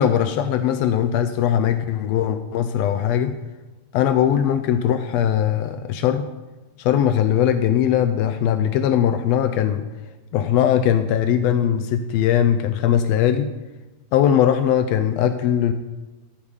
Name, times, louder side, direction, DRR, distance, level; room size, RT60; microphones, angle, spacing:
voice 1, 0.0-3.3 3.9-6.3 6.8-9.8 10.3-13.5 14.1-15.7, left 9 dB, 85° left, 9 dB, 1.4 m, -20 dB
13.5 x 4.8 x 5.4 m, 1.1 s
omnidirectional pair, 3.4 m